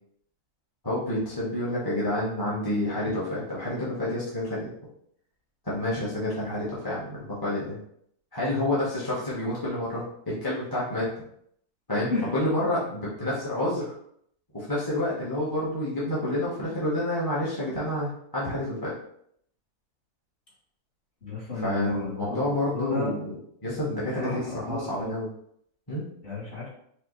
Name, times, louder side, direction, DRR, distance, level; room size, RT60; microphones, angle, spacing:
voice 1, 0.8-4.7 5.6-7.8 8.3-11.1 11.9-13.9 14.5-18.9 21.5-23.3 23.6-25.3 25.9-26.0, left 1 dB, 15° left, -8 dB, 1.2 m, -29 dB
voice 2, 21.2-23.1 24.2-25.1 26.2-26.7, left 3 dB, 35° left, -8 dB, 2.0 m, -32 dB
5.0 x 3.1 x 3.2 m, 0.68 s
omnidirectional pair, 1.7 m